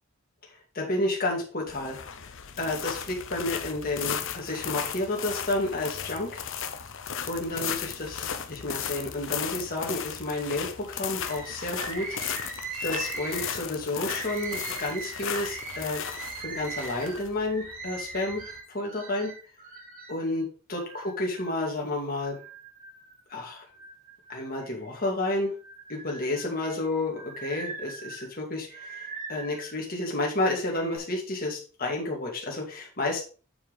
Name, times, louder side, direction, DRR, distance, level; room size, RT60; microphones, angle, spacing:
voice 1, 0.7-2.0 2.6-6.4 7.3-12.2 12.8-16.0 16.4-18.4 18.7-19.3 20.1-22.4 23.3-23.6 24.3-25.5 25.9-33.2, left 2 dB, 45° left, -2 dB, 1.9 m, -31 dB
sound 1, 1.7-18.6, left 8 dB, 60° left, 0.8 m, -36 dB
Bird, 11.3-20.2 20.7-21.7 22.2-23.2 23.7-25.0 25.5-29.8 30.5-31.0, right 3 dB, 40° right, 2.0 m, -40 dB
7.2 x 4.7 x 5.1 m, 0.37 s
head